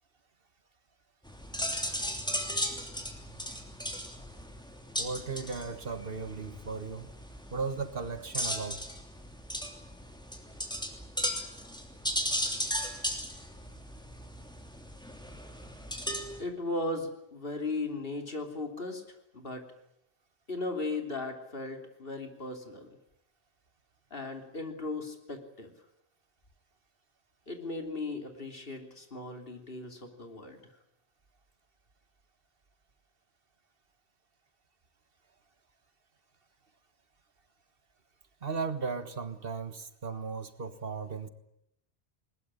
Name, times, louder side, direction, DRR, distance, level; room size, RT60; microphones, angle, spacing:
sound 1, 1.3-16.4, equal, 5° left, 3.0 m, -36 dB
voice 1, 5.0-7.1 7.5-8.8 38.4-41.3, right 4 dB, 60° right, 11 dB, 1.7 m, -36 dB
voice 2, 16.4-19.0 19.3-19.6 20.5-22.9 24.1-25.7 27.5-30.6, left 2 dB, 60° left, 5 dB, 3.5 m, -37 dB
20.5 x 20.5 x 9.9 m, 0.80 s
omnidirectional pair, 1.1 m